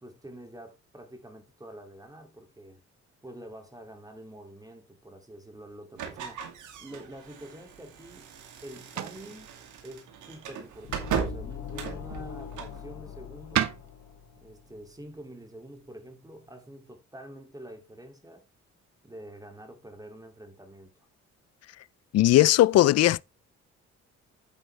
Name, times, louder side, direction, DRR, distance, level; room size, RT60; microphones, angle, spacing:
voice 1, 0.0-2.8 3.2-6.4 6.8-8.3 8.6-9.6 9.8-13.7 14.4-18.4 19.0-20.9, right 1 dB, 10° right, 2.5 m, -46 dB
sound 1, 6.0-12.8, right 7 dB, 80° right, 2.4 m, -37 dB
sound 2, 7.8-16.9, right 10 dB, 65° right, 1.1 m, -39 dB
sound 3, 10.8-14.7, left 8 dB, 70° left, 2.4 m, -42 dB
voice 2, 22.1-23.2, left 14 dB, 55° left, 0.4 m, -18 dB
8.9 x 8.1 x 3.3 m
cardioid pair, 90°, 30 cm